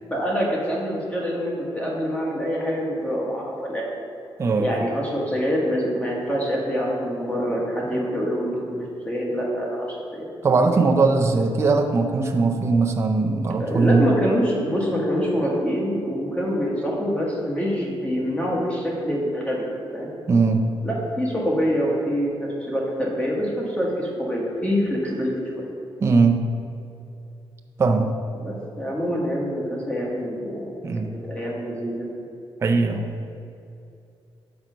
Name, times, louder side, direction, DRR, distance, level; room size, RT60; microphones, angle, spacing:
voice 1, 0.1-3.9 4.6-10.3 13.6-19.6 19.9-20.1 20.8-25.7 28.4-30.7 31.0-32.1, equal, 15° left, -3 dB, 1.3 m, -25 dB
voice 2, 4.4-4.7 10.4-14.1 20.3-20.7 26.0-26.4 27.8-28.1 30.8-31.1 32.6-33.2, right 4 dB, 30° right, 3 dB, 0.4 m, -20 dB
6.0 x 5.5 x 5.0 m, 2.6 s
wide cardioid pair, 165°, 9 cm